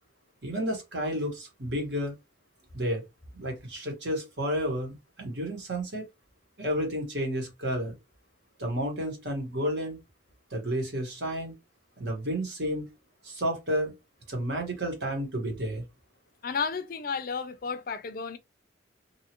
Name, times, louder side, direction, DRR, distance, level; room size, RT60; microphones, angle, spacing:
voice 1, 0.4-2.1 2.7-3.0 3.3-6.0 6.6-8.0 8.6-10.0 10.5-11.5 12.0-12.8 13.2-13.9 14.3-15.8, equal, 65° right, 1.2 m, -31 dB
voice 2, 16.4-18.4, left 5 dB, 45° left, 0.4 m, -32 dB
2.8 x 2.4 x 2.8 m
head